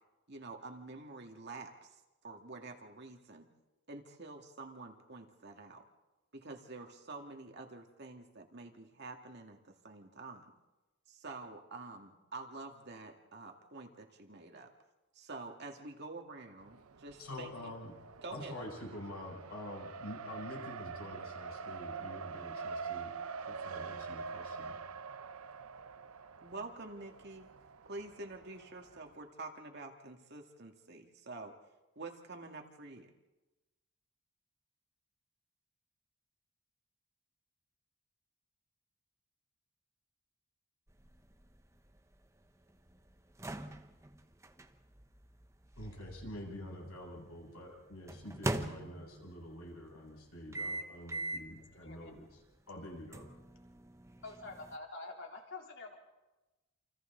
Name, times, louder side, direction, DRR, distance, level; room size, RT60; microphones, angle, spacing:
voice 1, 0.3-2.0 2.2-3.5 3.9-5.9 6.3-10.5 11.1-14.7 15.1-17.7 18.2-18.7 26.4-27.5 27.9-31.6 32.0-33.1, right 3 dB, 50° right, 3 dB, 2.2 m, -48 dB
Race car auto racing, 16.6-29.2, right 5 dB, 80° right, 0.7 m, -45 dB
voice 2, 17.2-18.0 18.3-23.1 23.5-24.8 45.8-52.4 52.7-53.3, left 1 dB, 80° left, -1 dB, 7.6 m, -47 dB
sound 1, 40.9-47.0 48.1-49.4 50.5-51.6 52.0-52.2 53.1-54.8, right 1 dB, 15° right, 0.9 m, -42 dB
voice 3, 51.7-52.1 54.2-55.9, left 3 dB, 55° left, 0 dB, 3.6 m, -47 dB
28.5 x 28.0 x 4.0 m, 1.1 s
head